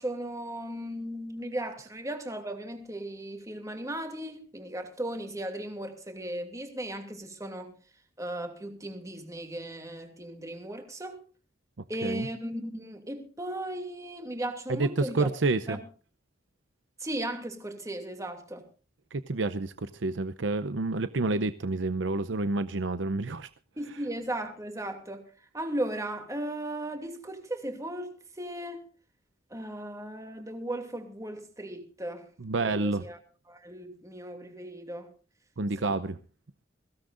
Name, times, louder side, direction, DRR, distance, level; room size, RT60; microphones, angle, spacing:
voice 1, 0.0-7.7 8.2-11.2 11.9-15.3 15.7-15.9 17.0-18.7 23.8-25.3 25.5-28.9 29.5-32.3 32.6-33.2 33.5-35.1 35.8-36.0, right 1 dB, 15° right, 2.7 m, -36 dB
voice 2, 14.7-15.8 19.1-23.5 32.4-33.0 35.6-36.2, right 3 dB, 75° right, 0.7 m, -29 dB
22.5 x 17.0 x 2.6 m
head